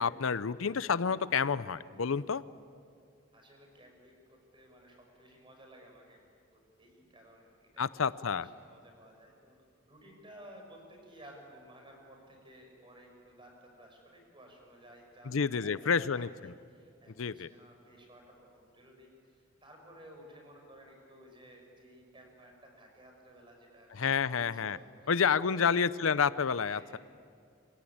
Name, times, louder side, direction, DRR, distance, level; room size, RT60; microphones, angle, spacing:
voice 1, 0.0-2.4 7.8-8.5 15.3-16.5 17.2-17.5 23.9-24.8 25.1-27.0, left 6 dB, 85° left, 16 dB, 0.6 m, -29 dB
voice 2, 3.3-6.2 6.5-8.0 8.3-9.6 9.9-25.1 25.5-25.7 26.7-27.0, equal, 25° right, 2 dB, 6.2 m, -55 dB
27.5 x 24.5 x 8.7 m, 2.2 s
head